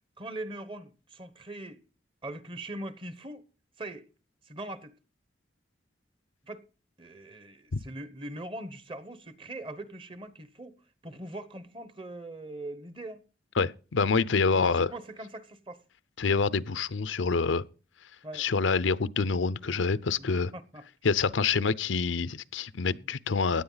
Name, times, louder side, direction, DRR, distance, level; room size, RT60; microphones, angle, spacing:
voice 1, 0.2-1.8 2.2-3.4 3.8-4.1 4.4-4.9 6.5-6.6 7.0-10.8 11.0-13.2 14.5-15.8 18.2-18.5 20.2-20.9 22.9-23.0, right 1 dB, 25° right, 1.1 m, -41 dB
voice 2, 13.6-14.9 16.2-17.6 18.3-20.5 21.0-23.6, left 4 dB, 75° left, 0.6 m, -26 dB
16.5 x 10.0 x 4.0 m
head